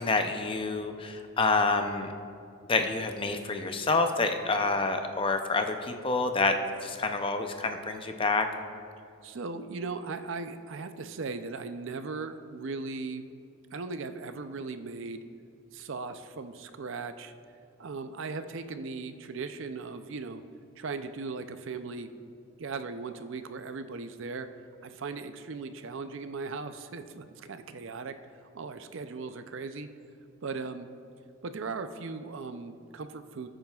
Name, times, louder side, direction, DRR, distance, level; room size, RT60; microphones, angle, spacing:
voice 1, 0.0-2.1 2.7-6.5 6.8-8.5, left 3 dB, 25° left, 6 dB, 0.5 m, -28 dB
voice 2, 9.2-13.2 13.7-15.2 15.7-17.3 17.8-20.4 20.8-22.1 22.6-24.5 24.8-29.9 30.4-30.9 31.4-33.5, right 4 dB, 60° right, 9 dB, 0.5 m, -38 dB
19.0 x 8.9 x 2.4 m, 2.4 s
head